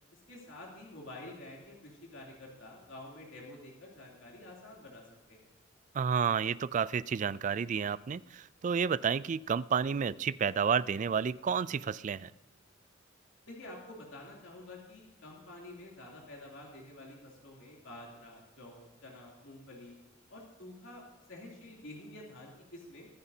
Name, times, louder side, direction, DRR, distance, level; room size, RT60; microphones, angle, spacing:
voice 1, 0.3-5.5 13.5-19.9 20.3-23.1, left 1 dB, 80° left, -2 dB, 3.0 m, -49 dB
voice 2, 5.9-12.3, right 6 dB, 40° right, 18 dB, 0.3 m, -31 dB
23.5 x 9.9 x 2.8 m, 1.1 s
head